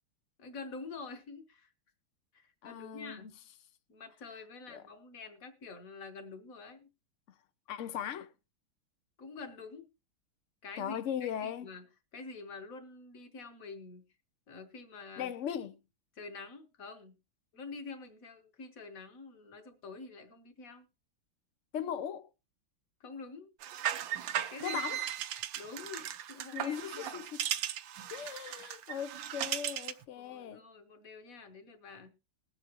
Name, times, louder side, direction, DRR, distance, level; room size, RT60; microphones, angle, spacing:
voice 1, 0.4-1.7 2.3-3.3 3.9-6.9 9.2-9.9 10.6-11.8 12.1-14.1 14.5-15.3 16.2-17.2 17.5-20.9 23.0-23.5 24.5-24.8 25.5-27.2 30.2-32.1, left 4 dB, 45° left, 1.5 m, -47 dB
voice 2, 2.6-3.3 4.7-4.8 7.7-8.3 10.8-11.7 15.2-15.8 21.7-22.3 24.6-25.0 26.5-27.4 28.1-30.6, left 9 dB, 75° left, 0.6 m, -38 dB
sound 1, 23.6-30.0, right 11 dB, 75° right, 1.4 m, -37 dB
20.5 x 7.9 x 3.0 m
omnidirectional pair, 2.2 m